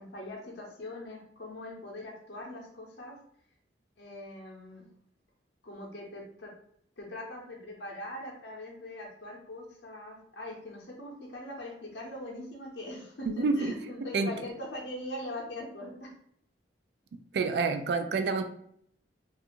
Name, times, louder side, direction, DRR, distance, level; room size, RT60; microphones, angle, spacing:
voice 1, 0.0-3.2 4.0-4.9 5.6-6.5 7.0-16.1, left 1 dB, 65° left, -1 dB, 0.6 m, -42 dB
voice 2, 13.3-14.3 17.1-18.4, right 4 dB, 65° right, 7 dB, 0.3 m, -29 dB
2.5 x 2.4 x 2.8 m, 0.67 s
head